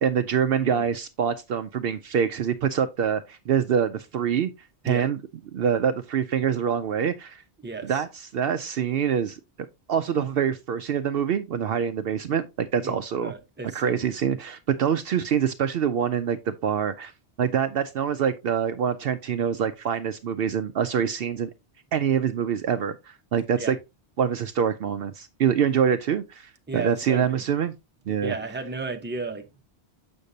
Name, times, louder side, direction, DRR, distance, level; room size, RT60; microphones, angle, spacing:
voice 1, 0.0-4.5 4.8-5.2 5.5-7.4 7.8-9.4 9.9-13.3 13.7-17.1 17.4-21.5 21.9-23.8 24.2-27.7 28.1-28.3, right 8 dB, 65° right, 0.7 m, -25 dB
voice 2, 7.6-8.0 12.8-12.9 13.2-14.1 23.6-23.7 26.7-27.4 28.2-29.5, right 3 dB, 10° right, 0.8 m, -34 dB
7.2 x 6.6 x 2.7 m
omnidirectional pair, 1.1 m